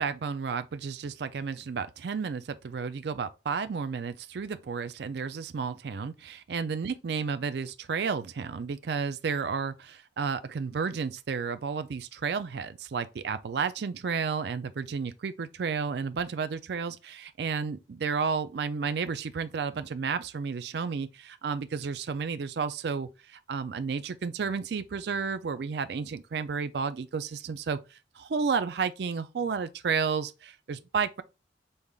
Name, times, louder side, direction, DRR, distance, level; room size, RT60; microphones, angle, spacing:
voice 1, 0.0-31.2, right 5 dB, 60° right, 0.4 m, -32 dB
5.4 x 3.3 x 2.3 m
head